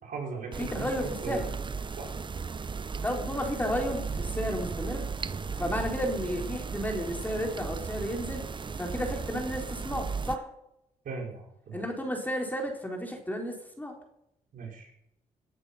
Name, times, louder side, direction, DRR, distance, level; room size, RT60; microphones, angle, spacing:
voice 1, 0.0-1.5 2.0-2.1 11.0-11.8 14.5-14.9, right 4 dB, 65° right, 0 dB, 5.4 m, -38 dB
sound 1, 0.5-10.4, right 5 dB, 30° right, 0.9 m, -35 dB
voice 2, 0.6-1.5 3.0-5.1 5.6-8.4 8.8-10.5 11.7-13.9, equal, 10° left, 2 dB, 4.0 m, -32 dB
18.5 x 10.5 x 5.8 m, 0.79 s
cardioid pair, 75°, 15 cm